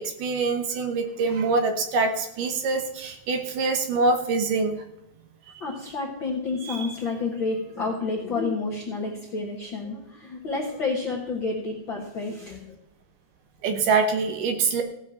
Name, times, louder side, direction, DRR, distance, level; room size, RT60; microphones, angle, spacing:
voice 1, 0.0-4.8 6.7-6.9 13.6-14.8, right 4 dB, 65° right, 6 dB, 2.5 m, -25 dB
voice 2, 5.6-12.7, left 3 dB, 50° left, -2 dB, 1.5 m, -30 dB
16.5 x 5.8 x 7.1 m, 0.83 s
omnidirectional pair, 4.3 m